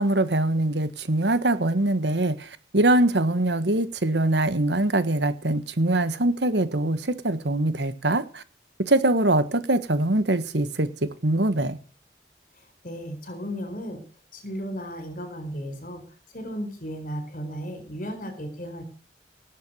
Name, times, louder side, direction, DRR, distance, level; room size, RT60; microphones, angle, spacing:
voice 1, 0.0-8.4 8.8-11.8, right 1 dB, 75° right, 13 dB, 1.5 m, -23 dB
voice 2, 12.8-14.0 14.3-16.0 16.3-18.8, equal, 50° left, 8 dB, 4.6 m, -34 dB
18.0 x 8.3 x 6.3 m, 0.38 s
head